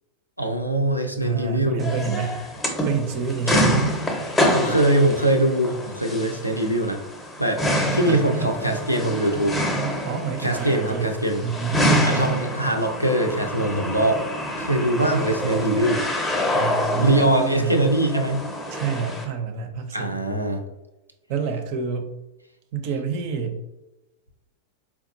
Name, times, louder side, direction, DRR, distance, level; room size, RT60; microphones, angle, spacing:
voice 1, 0.4-1.9 3.5-3.7 4.5-7.0 7.4-7.6 7.9-9.6 10.4-11.4 12.0-14.2 14.6-16.0 17.0-18.5 19.9-20.6, right 1 dB, 90° left, 3 dB, 0.5 m, -22 dB
voice 2, 1.2-2.4 2.8-3.6 8.0-8.7 10.0-12.3 16.5-17.8 18.7-20.2 21.3-22.1 22.7-23.6, right 6 dB, 45° right, 6 dB, 0.5 m, -28 dB
sound 1, 1.8-19.2, equal, 10° left, 0.7 m, -26 dB
4.4 x 2.3 x 2.6 m, 0.98 s
figure-of-eight pair, 90°, 0 cm